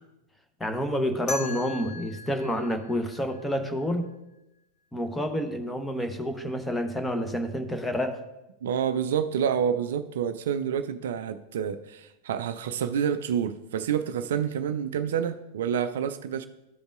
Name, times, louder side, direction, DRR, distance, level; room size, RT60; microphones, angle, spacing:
voice 1, 0.6-4.1 4.9-8.2, equal, 5° left, 6 dB, 0.9 m, -29 dB
sound 1, 1.3-4.1, left 3 dB, 30° left, 1.7 m, -39 dB
voice 2, 8.6-16.5, right 8 dB, 60° right, 10 dB, 0.4 m, -28 dB
13.5 x 5.2 x 2.5 m, 0.94 s
figure-of-eight pair, 90°, 0 cm